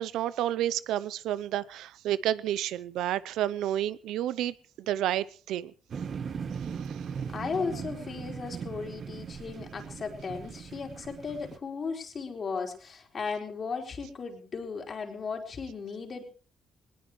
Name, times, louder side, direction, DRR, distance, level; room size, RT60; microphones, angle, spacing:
voice 1, 0.0-5.7, right 12 dB, 90° right, 18 dB, 0.6 m, -30 dB
sound 1, 5.9-11.6, right 6 dB, 50° right, 1.4 m, -39 dB
voice 2, 7.3-16.2, left 5 dB, 45° left, 3 dB, 4.3 m, -36 dB
20.0 x 19.0 x 3.2 m, 0.39 s
cardioid pair, 90°, 0 cm